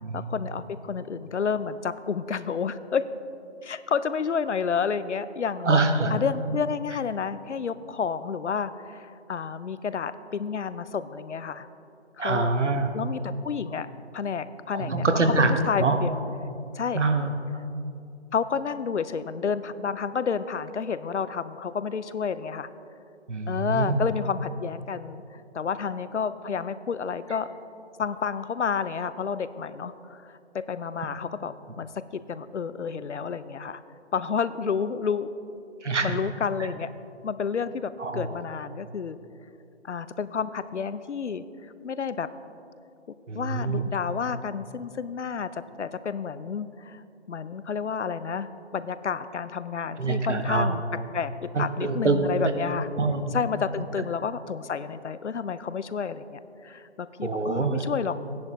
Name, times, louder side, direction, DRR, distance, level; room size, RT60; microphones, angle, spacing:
voice 1, 0.1-3.1 3.6-5.7 6.1-11.7 12.2-12.5 12.9-13.9 14.1-16.2 16.7-17.0 18.3-22.7 23.5-27.5 28.0-33.8 34.1-35.3 36.0-36.9 37.2-39.2 39.8-41.4 41.8-42.3 43.3-47.0 47.3-50.8 51.1-52.9 53.3-58.2, left 6 dB, 80° left, 14 dB, 0.6 m, -30 dB
voice 2, 5.6-6.2 12.2-12.9 14.7-15.5 15.8-16.0 16.9-17.3 23.3-24.0 35.8-36.2 38.0-38.4 43.3-43.8 50.0-50.8 51.5-52.4 53.0-53.4 57.2-57.8, right 3 dB, 90° right, 6 dB, 1.2 m, -25 dB
14.0 x 10.5 x 3.1 m, 2.7 s
figure-of-eight pair, 180°, 35 cm